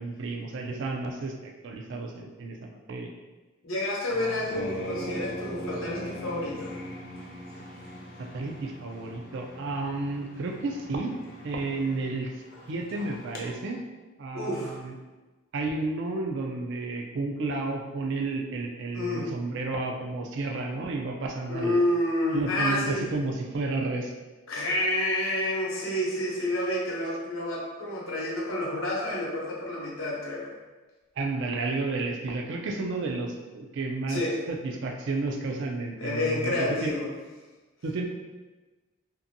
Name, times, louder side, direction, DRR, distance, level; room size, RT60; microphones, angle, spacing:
voice 1, 0.0-3.1 8.2-11.2 11.4-12.3 12.7-13.8 14.2-14.9 15.5-21.8 22.3-24.1 31.2-37.0 37.8-38.1, right 3 dB, 60° right, 2 dB, 0.4 m, -32 dB
voice 2, 3.6-6.7 14.3-14.8 18.9-19.3 21.5-23.1 24.5-30.5 34.1-34.4 36.0-37.1, left 1 dB, 75° left, -4 dB, 0.8 m, -29 dB
sound 1, 4.1-13.4, equal, 45° left, 0.5 m, -40 dB
2.6 x 2.5 x 2.6 m, 1.2 s
head